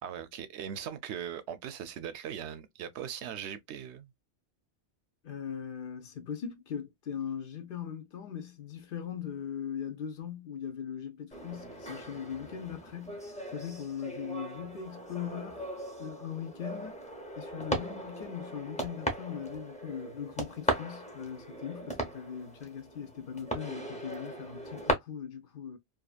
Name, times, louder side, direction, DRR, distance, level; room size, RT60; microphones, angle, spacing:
voice 1, 0.0-4.1, right 9 dB, 80° right, 0.9 m, -39 dB
voice 2, 5.2-13.2 13.5-15.7 16.0-17.0 17.4-25.8, left 8 dB, 60° left, 0.7 m, -40 dB
sound 1, 11.3-24.9, equal, 5° left, 0.7 m, -38 dB
2.7 x 2.4 x 2.3 m
omnidirectional pair, 1.1 m